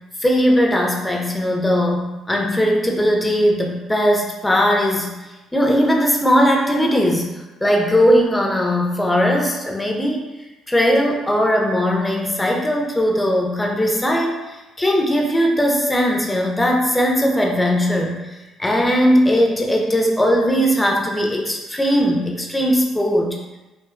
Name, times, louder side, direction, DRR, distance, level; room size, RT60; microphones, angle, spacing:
voice 1, 0.2-5.1 5.5-10.3 10.7-18.3 18.6-23.4, equal, 10° left, 0 dB, 0.5 m, -19 dB
2.6 x 2.3 x 2.4 m, 1.1 s
hypercardioid pair, 55°, 0 cm